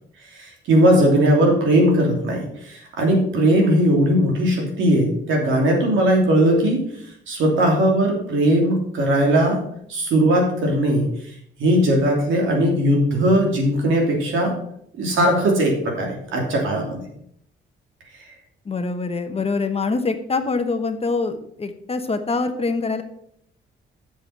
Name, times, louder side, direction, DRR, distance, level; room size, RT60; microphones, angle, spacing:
voice 1, 0.3-6.9 7.3-9.6 9.9-11.1 11.6-14.6 15.0-17.0, right 1 dB, 80° right, 1 dB, 3.0 m, -19 dB
voice 2, 18.6-23.0, left 4 dB, 30° left, 7 dB, 1.1 m, -24 dB
7.8 x 7.0 x 5.7 m, 0.70 s
cardioid pair, 90°, 20 cm